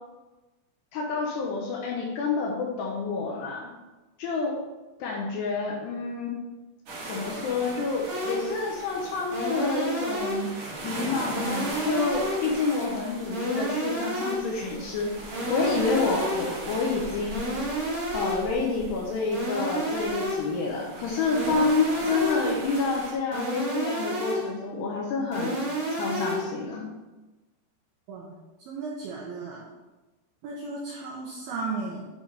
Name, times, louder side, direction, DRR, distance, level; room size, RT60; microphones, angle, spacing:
voice 1, 0.9-3.7 4.2-4.6 5.0-6.4 7.1-10.6 10.8-15.1 15.5-17.4 18.1-25.6 25.9-26.9, left 4 dB, 75° left, -1 dB, 2.6 m, -28 dB
sound 1, 6.9-23.1, right 2 dB, 70° right, 1.6 m, -39 dB
sound 2, 8.1-8.6 9.3-10.6 11.3-12.6 13.3-14.6 15.3-16.6 17.3-18.6 19.3-20.6 21.3-22.6 23.3-24.6 25.3-26.6, right 1 dB, 45° right, 1.5 m, -30 dB
voice 2, 28.6-29.7 30.4-32.0, right 3 dB, 85° right, -3 dB, 2.2 m, -35 dB
10.5 x 4.0 x 3.3 m, 1.1 s
omnidirectional pair, 5.5 m